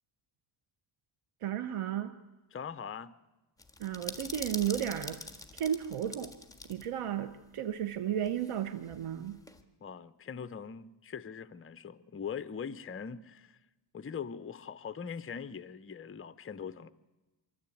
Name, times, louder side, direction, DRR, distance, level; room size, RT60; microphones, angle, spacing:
voice 1, 1.4-2.1 3.8-5.2 5.5-6.3 6.7-9.4, right 10 dB, 85° right, 0.9 m, -33 dB
voice 2, 2.5-3.1 9.8-13.6 13.9-16.9, left 7 dB, 25° left, 0.6 m, -41 dB
sound 1, 3.6-6.9 7.1-7.2 8.2-9.6, left 2 dB, 5° left, 1.6 m, -44 dB
24.0 x 13.5 x 8.5 m
wide cardioid pair, 95°, 50 cm